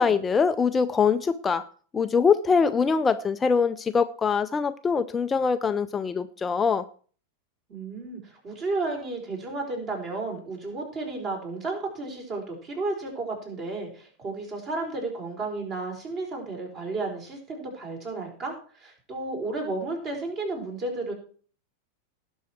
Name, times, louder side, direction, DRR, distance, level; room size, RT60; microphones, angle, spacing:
voice 1, 0.0-1.7 1.9-6.9, left 5 dB, 15° left, 10 dB, 0.5 m, -23 dB
voice 2, 7.7-21.1, right 3 dB, 35° right, 2 dB, 4.7 m, -33 dB
19.0 x 6.3 x 4.5 m, 0.42 s
figure-of-eight pair, 90°, 0 cm